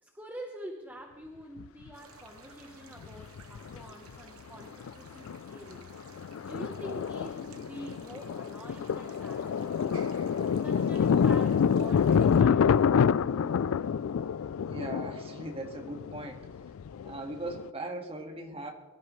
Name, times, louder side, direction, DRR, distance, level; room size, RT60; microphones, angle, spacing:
voice 1, 0.0-6.0 6.4-10.0 10.6-13.2, right 1 dB, 10° right, 1 dB, 1.0 m, -46 dB
Thunder, 1.6-1.7 3.0-3.8 4.1-4.2 4.6-4.9 5.3-17.7, left 7 dB, 70° left, 0.3 m, -27 dB
sound 1, 1.9-12.4, right 4 dB, 75° right, 1.3 m, -55 dB
voice 2, 14.7-16.4 17.0-18.7, right 1 dB, 25° right, 3 dB, 1.9 m, -39 dB
22.5 x 13.5 x 3.2 m, 1.4 s
head